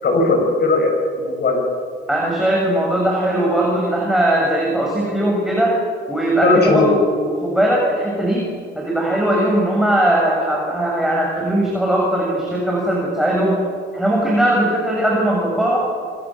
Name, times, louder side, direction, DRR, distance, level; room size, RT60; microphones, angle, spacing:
voice 1, 0.0-1.6 6.4-6.9, left 3 dB, 55° left, 3 dB, 7.6 m, -17 dB
voice 2, 2.1-5.8 6.1-6.9 7.2-8.5 8.7-13.6 13.9-15.8, right 1 dB, ahead, -3 dB, 7.8 m, -19 dB
26.5 x 26.0 x 7.6 m, 2.1 s
cardioid pair, 90°, 20 cm